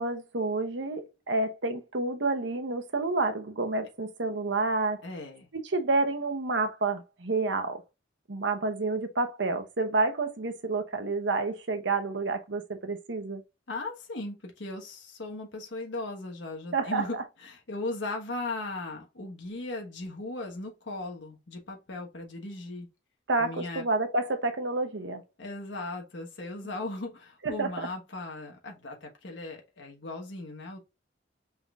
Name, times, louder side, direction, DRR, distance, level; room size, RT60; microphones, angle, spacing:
voice 1, 0.0-5.0 5.5-7.8 8.3-13.4 16.7-17.2 23.3-25.2 27.4-27.9, right 3 dB, 80° right, 0.9 m, -29 dB
voice 2, 5.0-5.5 13.7-22.9 23.4-23.8 25.4-30.8, left 2 dB, 85° left, 1.2 m, -37 dB
5.6 x 3.8 x 2.3 m
head